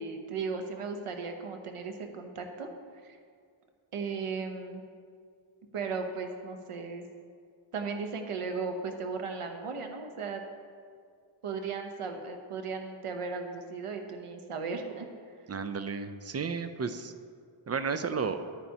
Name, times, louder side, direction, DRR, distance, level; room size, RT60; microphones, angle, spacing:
voice 1, 0.0-2.7 3.0-3.2 3.9-4.8 5.7-7.1 7.7-10.4 11.4-15.1, right 4 dB, 90° right, 5 dB, 0.9 m, -36 dB
voice 2, 15.5-17.1 17.7-18.5, right 5 dB, 35° right, 10 dB, 0.4 m, -33 dB
10.0 x 9.0 x 2.8 m, 2.2 s
wide cardioid pair, 90°, 50 cm